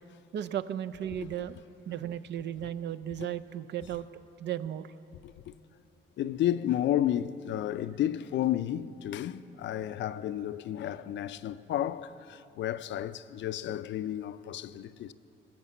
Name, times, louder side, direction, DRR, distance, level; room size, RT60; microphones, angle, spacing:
voice 1, 0.3-4.1 4.4-4.9, right 10 dB, 60° right, 0.5 m, -35 dB
voice 2, 5.2-5.5 6.2-15.1, left 11 dB, 65° left, 0.4 m, -32 dB
18.0 x 6.7 x 8.2 m
cardioid pair, 90°, 20 cm